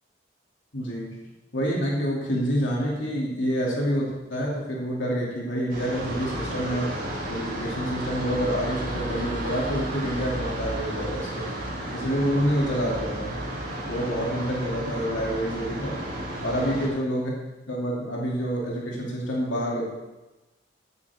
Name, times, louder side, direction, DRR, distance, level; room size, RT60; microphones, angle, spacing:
voice 1, 0.7-1.2 1.5-6.9 7.3-11.5 11.9-13.4 13.9-16.0 16.4-17.3 17.7-19.9, equal, 80° left, -4 dB, 2.7 m, -27 dB
sound 1, 5.7-16.9, right 1 dB, 50° right, 3.9 m, -32 dB
15.0 x 9.9 x 3.6 m, 1.1 s
head